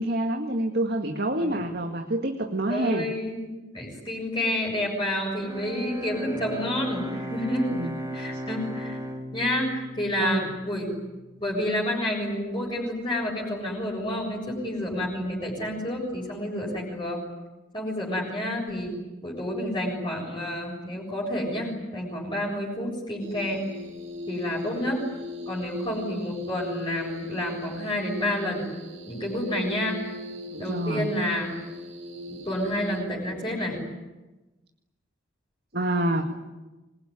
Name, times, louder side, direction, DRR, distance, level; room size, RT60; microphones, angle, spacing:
voice 1, 0.0-3.1 7.7-7.9 8.3-8.4 10.2-10.5 30.5-31.1 35.7-36.2, right 1 dB, 50° right, 3 dB, 2.1 m, -27 dB
voice 2, 2.7-3.5 3.7-7.7 8.1-9.0 9.3-10.9 11.4-17.2 17.7-18.9 19.2-23.6 24.3-25.0 25.5-28.7 29.1-30.0 30.6-31.5 32.3-33.8, left 1 dB, 25° left, -3 dB, 7.2 m, -29 dB
Bowed string instrument, 5.3-11.3, equal, 15° right, 3.9 m, -36 dB
sound 1, 23.2-33.0, left 1 dB, 80° right, 7.0 m, -39 dB
27.0 x 21.5 x 10.0 m, 1.1 s
head